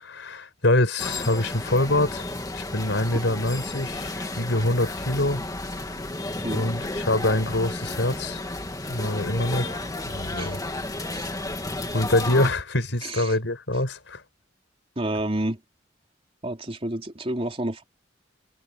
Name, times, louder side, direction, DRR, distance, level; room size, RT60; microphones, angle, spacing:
voice 1, 0.0-2.2 2.5-5.5 6.5-8.5 8.9-10.6 11.9-14.2, left 1 dB, 75° left, 5.4 m, -25 dB
sound 1, 1.0-12.5, left 2 dB, 20° left, 2.2 m, -32 dB
voice 2, 13.0-13.4 15.0-15.6 16.4-17.8, right 1 dB, 30° right, 3.5 m, -30 dB
head